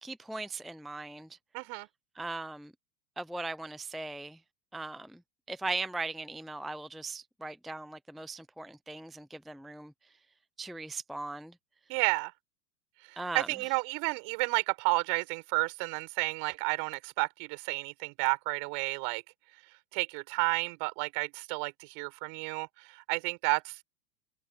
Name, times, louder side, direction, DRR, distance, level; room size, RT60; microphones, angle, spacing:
voice 1, 0.0-1.4 2.1-2.7 3.2-4.4 4.7-5.2 5.5-9.9 10.6-11.5 13.2-13.5, right 3 dB, ahead, 0.7 m, -39 dB
voice 2, 1.5-1.9 11.9-12.3 13.1-19.2 19.9-23.8, right 36 dB, 50° right, 6.4 m, -31 dB
hypercardioid pair, 105°, 47 cm